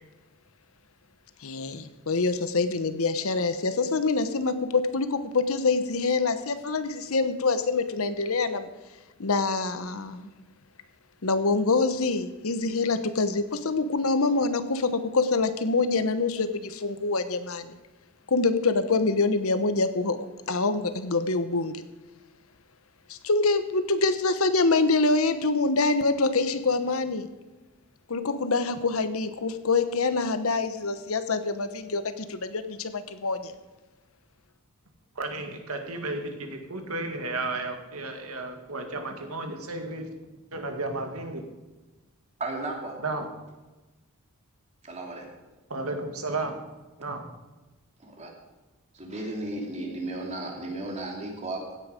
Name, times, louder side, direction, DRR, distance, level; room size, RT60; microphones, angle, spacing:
voice 1, 1.4-8.7 9.2-10.3 11.2-17.8 18.3-20.2 20.5-21.8 23.1-27.3 28.1-33.5, left 3 dB, 70° left, 11 dB, 1.0 m, -25 dB
voice 2, 35.2-40.1 40.5-41.4 43.0-43.3 45.7-46.5 47.0-47.2, right 2 dB, 70° right, 4 dB, 2.1 m, -33 dB
voice 3, 42.4-43.0 44.8-45.3 48.0-48.3 48.9-51.7, right 2 dB, 30° right, 0 dB, 3.0 m, -34 dB
16.5 x 9.6 x 5.1 m, 1.2 s
head